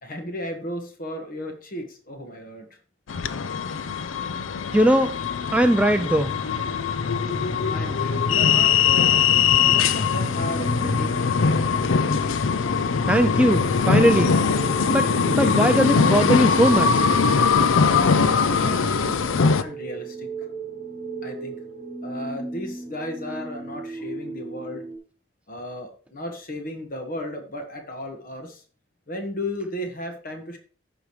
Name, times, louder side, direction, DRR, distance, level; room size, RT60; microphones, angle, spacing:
voice 1, 0.0-2.7 7.7-11.7 18.1-20.3 21.2-21.6 22.0-24.8 25.5-28.6 29.1-30.6, left 1 dB, 45° left, 1.5 m, -35 dB
sound 1, 3.1-19.6, left 5 dB, 90° left, 0.5 m, -21 dB
voice 2, 4.7-5.2 5.5-6.3 13.1-14.4 14.9-17.1, right 1 dB, 5° right, 0.3 m, -20 dB
sound 2, 7.1-25.0, right 3 dB, 25° left, 3.3 m, -38 dB
15.0 x 5.2 x 3.2 m
head